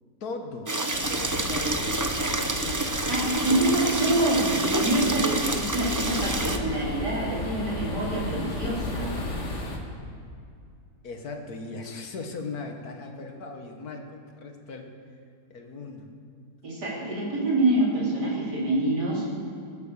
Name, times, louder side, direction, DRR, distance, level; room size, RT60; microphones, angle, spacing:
voice 1, 0.2-0.7 1.1-1.8 11.0-14.9 15.5-16.1, left 3 dB, 65° left, 4 dB, 1.8 m, -38 dB
sound 1, 0.7-6.6, right 2 dB, 20° right, 0.5 m, -28 dB
sound 2, 0.9-9.8, left 2 dB, 45° left, 1.9 m, -34 dB
voice 2, 3.1-9.2 16.6-19.3, right 1 dB, 85° right, -5 dB, 4.1 m, -26 dB
19.5 x 9.5 x 6.8 m, 2.4 s
omnidirectional pair, 1.7 m